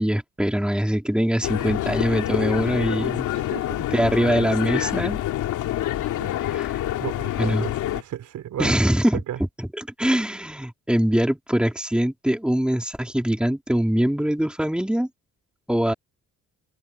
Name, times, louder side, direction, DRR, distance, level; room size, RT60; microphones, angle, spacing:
voice 1, 0.0-3.3 3.9-5.2 6.5-6.7 7.4-7.7 8.6-9.2 9.6-15.1 15.7-15.9, equal, 5° right, 4.3 m, -23 dB
sound 1, 1.4-8.0, left 13 dB, 85° left, 2.9 m, -26 dB
voice 2, 3.3-3.9 6.2-6.4 7.0-8.7 9.3-9.4, right 11 dB, 70° right, 4.1 m, -34 dB
cardioid pair, 90°, 30 cm